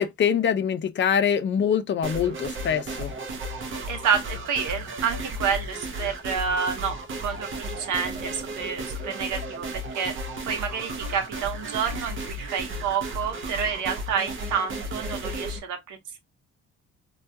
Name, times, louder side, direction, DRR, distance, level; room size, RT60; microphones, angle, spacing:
voice 1, 0.0-3.1, left 8 dB, 40° left, 0.5 m, -24 dB
sound 1, 2.0-15.6, right 1 dB, 40° right, 0.6 m, -34 dB
voice 2, 3.9-10.2 10.5-16.2, right 6 dB, 80° right, 0.9 m, -29 dB
2.3 x 2.2 x 2.7 m
cardioid pair, 90°, 30 cm